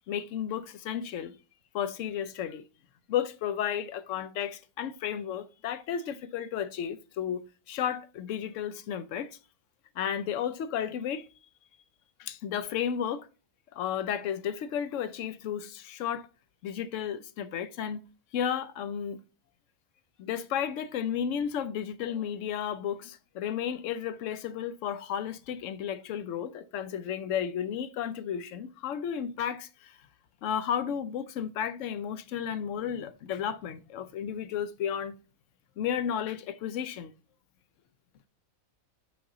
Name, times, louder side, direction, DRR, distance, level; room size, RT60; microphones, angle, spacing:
voice 1, 0.1-1.3 1.7-2.6 3.1-9.4 10.0-11.3 12.2-13.3 13.7-16.3 16.6-18.0 18.3-19.2 20.2-30.0 30.4-35.2 35.8-37.1, left 9 dB, 65° left, 0.9 m, -33 dB
5.5 x 5.4 x 3.7 m
omnidirectional pair, 1.5 m